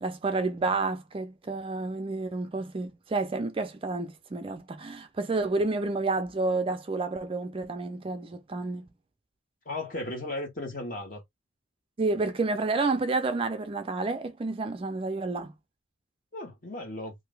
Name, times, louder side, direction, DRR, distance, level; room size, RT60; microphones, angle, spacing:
voice 1, 0.0-8.9 12.0-15.5, right 3 dB, 25° right, 0.4 m, -30 dB
voice 2, 9.6-11.2 16.3-17.1, left 2 dB, 45° left, 1.4 m, -35 dB
2.8 x 2.6 x 3.2 m
head